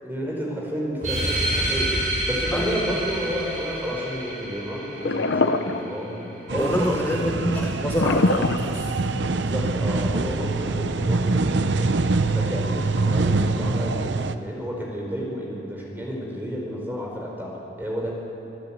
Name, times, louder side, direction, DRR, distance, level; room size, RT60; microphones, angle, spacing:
voice 1, 0.0-2.0 2.3-7.6 9.3-11.9 12.2-18.1, equal, 10° right, -2 dB, 4.5 m, -31 dB
sound 1, 1.0-6.0, right 1 dB, 40° right, 6.2 m, -28 dB
sound 2, 5.0-6.3 8.0-9.3, left 2 dB, 65° left, 0.8 m, -23 dB
voice 2, 6.5-8.8, equal, 10° left, -1 dB, 1.2 m, -26 dB
sound 3, 6.5-14.4, right 3 dB, 65° right, 0.7 m, -24 dB
25.5 x 13.0 x 8.7 m, 2.9 s
head